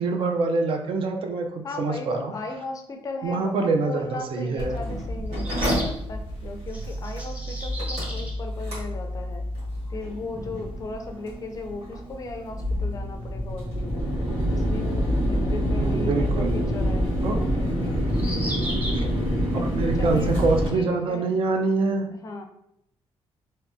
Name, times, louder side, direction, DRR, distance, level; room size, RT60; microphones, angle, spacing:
voice 1, 0.0-2.3 3.2-4.8 15.7-16.8 17.2-17.4 18.9-19.1 19.5-22.1, right 3 dB, 60° right, 4 dB, 0.5 m, -25 dB
voice 2, 1.6-5.6 6.1-9.4 9.9-14.1 14.5-18.7 19.9-20.3 20.7-21.3 22.2-22.5, left 3 dB, 35° left, 4 dB, 0.4 m, -37 dB
sound 1, 3.8-3.9 5.3-6.0 6.7-8.4 9.6-9.7 9.9-10.0 12.4-12.5 15.6-15.7 18.1-19.1, equal, 15° right, 0.6 m, -35 dB
Mechanical fan, 4.6-20.7, equal, 75° right, 1.5 m, -27 dB
3.4 x 2.7 x 2.6 m, 0.76 s
cardioid pair, 130°, 10 cm